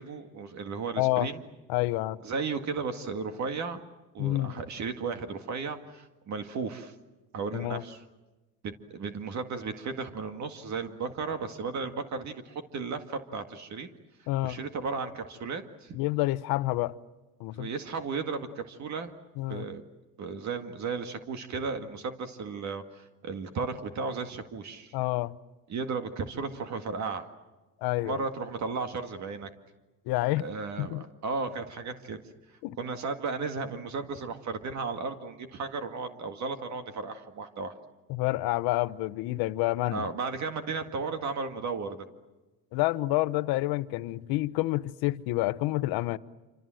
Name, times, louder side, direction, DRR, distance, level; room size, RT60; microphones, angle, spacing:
voice 1, 0.0-1.4 2.2-3.8 4.1-6.9 7.3-8.0 8.6-13.9 14.4-16.0 17.5-19.1 19.5-19.8 20.2-25.0 25.7-27.3 28.0-29.5 30.4-32.2 32.8-37.7 39.9-42.1, right 4 dB, 50° right, 2.0 m, -35 dB
voice 2, 1.0-1.3 1.7-2.2 4.2-4.6 7.5-7.8 14.3-14.7 15.9-17.0 17.4-17.7 19.4-19.7 24.9-25.3 27.8-28.2 30.1-30.5 30.8-31.0 32.6-32.8 38.1-40.0 42.7-46.2, left 18 dB, 90° left, 0.9 m, -28 dB
27.5 x 26.5 x 7.7 m
cardioid pair, 130°, 35 cm